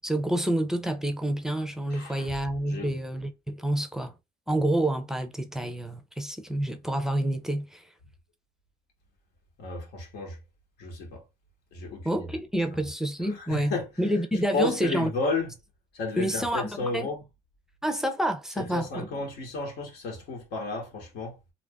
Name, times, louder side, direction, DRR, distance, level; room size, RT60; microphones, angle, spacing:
voice 1, 0.0-4.1 4.5-7.8 12.0-15.1 16.2-17.1 17.8-19.1, right 1 dB, 5° right, 0.5 m, -28 dB
voice 2, 1.9-2.3 2.6-2.9 9.6-10.4 10.8-11.2 11.7-12.2 13.3-13.9 14.5-15.5 15.9-17.2 18.6-21.4, left 3 dB, 75° left, 1.2 m, -32 dB
2.6 x 2.4 x 3.4 m
cardioid pair, 110°, 17 cm